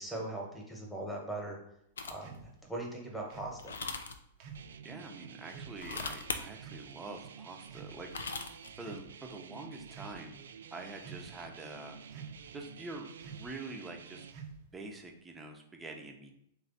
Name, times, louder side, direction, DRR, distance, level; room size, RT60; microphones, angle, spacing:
voice 1, 0.0-1.6 2.1-3.8, right 1 dB, ahead, -2 dB, 1.3 m, -40 dB
sound 1, 2.0-2.4 3.6-4.2 5.7-6.4 7.9-8.7, left 4 dB, 85° left, 0.5 m, -38 dB
sound 2, 2.2-2.5 3.3-3.6 4.4-4.7 5.5-5.8 6.6-6.9 7.7-8.2 8.8-9.1 9.8-10.2 11.0-11.4 12.1-12.5 13.2-13.5 14.3-14.8, right 6 dB, 50° right, 0.7 m, -48 dB
sound 3, 4.5-14.3, right 7 dB, 75° right, 0.3 m, -51 dB
voice 2, 4.8-8.1 8.4-10.4 10.7-12.0 12.5-14.3 14.7-16.3, right 2 dB, 15° right, 2 dB, 0.8 m, -46 dB
3.4 x 3.2 x 4.1 m, 0.75 s
hypercardioid pair, 110°, 0 cm